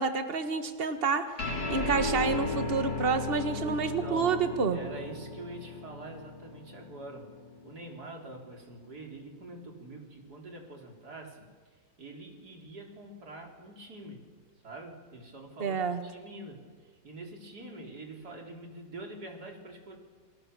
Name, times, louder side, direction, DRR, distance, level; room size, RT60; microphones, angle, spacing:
voice 1, 0.0-1.3 1.7-4.8 15.6-16.0, right 5 dB, 35° right, 8 dB, 1.7 m, -29 dB
sound 1, 1.4-8.2, left 2 dB, 70° left, 4.1 m, -36 dB
voice 2, 3.5-7.3 7.6-11.5 12.0-14.2 14.6-16.7 17.0-20.0, right 2 dB, 60° right, 1 dB, 4.4 m, -45 dB
28.5 x 24.5 x 6.9 m, 1.5 s
omnidirectional pair, 1.9 m